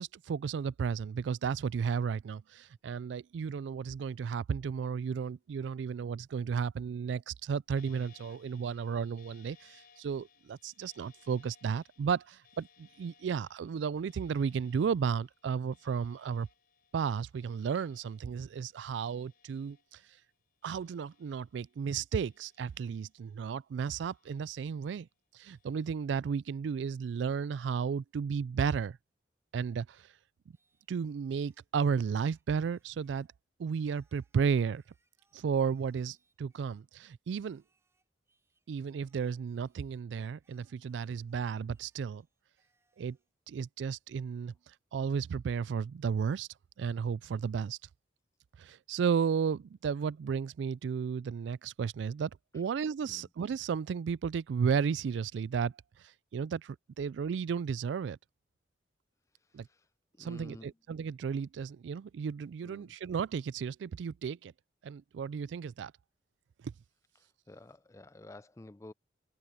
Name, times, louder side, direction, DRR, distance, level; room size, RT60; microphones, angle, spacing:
voice 1, 0.0-16.5 16.9-20.0 20.6-25.1 25.3-29.0 29.5-30.0 30.9-33.3 33.6-34.8 35.3-37.6 38.7-42.2 43.0-43.2 43.5-44.5 44.9-46.5 46.8-47.8 48.6-55.7 56.3-58.2 59.5-59.7 60.2-64.5 64.8-65.9 66.6-66.7, right 6 dB, 80° right, 0.3 m, -33 dB
sound 1, 7.7-20.3 20.6-21.8 22.2-23.5 23.9-24.9 25.5-26.0, left 7 dB, 55° left, 5.1 m, -65 dB
Singing, 30.5-33.4 33.9-36.9 37.4-40.1 40.4-43.3, right 3 dB, 15° right, 6.5 m, -78 dB
voice 2, 59.4-59.9 60.1-60.8 62.6-63.0 67.2-68.9, left 2 dB, 15° left, 0.4 m, -52 dB
open air
head